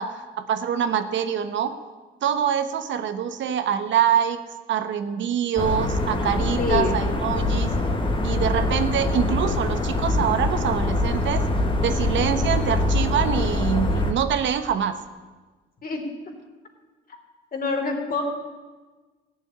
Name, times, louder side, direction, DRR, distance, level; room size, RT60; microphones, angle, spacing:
voice 1, 0.0-1.7 2.2-4.4 4.7-7.7 8.2-11.5 11.8-15.0, right 8 dB, 70° right, 9 dB, 1.1 m, -25 dB
sound 1, 5.6-14.1, left 2 dB, 25° left, 1.8 m, -24 dB
voice 2, 6.6-7.0 15.8-16.0 17.5-18.2, left 3 dB, 45° left, 2 dB, 3.5 m, -25 dB
15.5 x 7.2 x 9.5 m, 1.3 s
cardioid pair, 90°, 20 cm